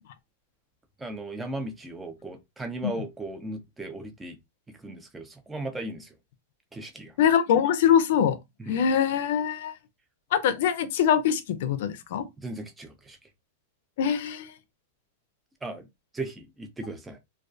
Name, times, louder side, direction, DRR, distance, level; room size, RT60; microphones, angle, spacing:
voice 1, 1.0-4.4 4.7-6.1 6.7-7.1 8.6-8.8 12.4-13.2 15.6-15.9 16.1-17.2, right 2 dB, 10° right, 0.5 m, -37 dB
voice 2, 7.2-8.4 8.7-9.7 10.3-12.3 14.0-14.5, left 8 dB, 65° left, 0.4 m, -23 dB
2.2 x 2.2 x 2.5 m
hypercardioid pair, 130°, 0 cm